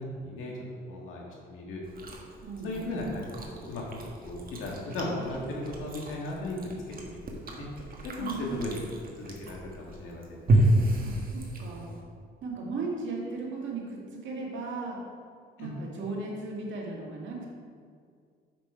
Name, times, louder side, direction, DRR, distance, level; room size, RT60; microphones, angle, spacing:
voice 1, 0.2-0.6 0.9-1.8 2.6-6.6 6.9-7.2 7.4-7.7 8.0-10.7 15.6-15.7, left 2 dB, 85° left, -2 dB, 1.9 m, -36 dB
Chewing mastication, 1.8-12.0, right 1 dB, 45° right, 1.3 m, -31 dB
voice 2, 2.4-2.9 8.2-8.6 11.0-11.9 12.4-15.0 15.6-17.5, right 3 dB, 70° right, -2 dB, 1.9 m, -36 dB
7.1 x 6.0 x 4.7 m, 2.1 s
cardioid pair, 90°, 20 cm